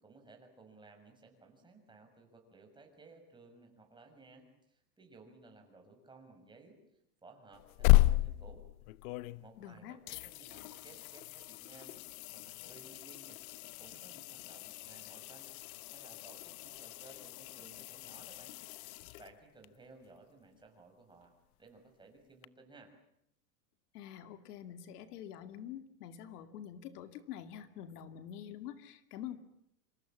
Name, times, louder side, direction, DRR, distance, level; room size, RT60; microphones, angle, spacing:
voice 1, 0.0-6.8 7.2-8.6 9.4-13.4 13.8-15.5 15.9-18.5 19.2-21.3 21.6-22.9, right 3 dB, 10° right, 3 dB, 6.4 m, -58 dB
sound 1, 7.5-9.7 10.1-19.7 22.4-22.5, left 19 dB, 65° left, 1.0 m, -34 dB
voice 2, 9.6-10.0 23.9-29.4, left 10 dB, 80° left, 9 dB, 2.4 m, -46 dB
27.5 x 27.0 x 7.5 m, 0.78 s
supercardioid pair, 150°, 45 cm